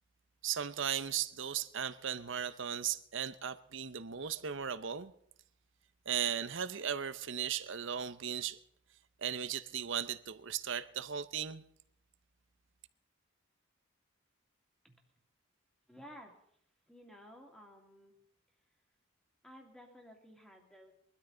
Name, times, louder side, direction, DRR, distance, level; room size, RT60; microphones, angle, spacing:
voice 1, 0.4-5.1 6.1-8.6 9.2-11.6, right 8 dB, 60° right, 0.7 m, -37 dB
voice 2, 15.9-16.3 16.9-18.1 19.4-20.9, equal, 5° left, 2.2 m, -54 dB
22.5 x 13.0 x 3.9 m
head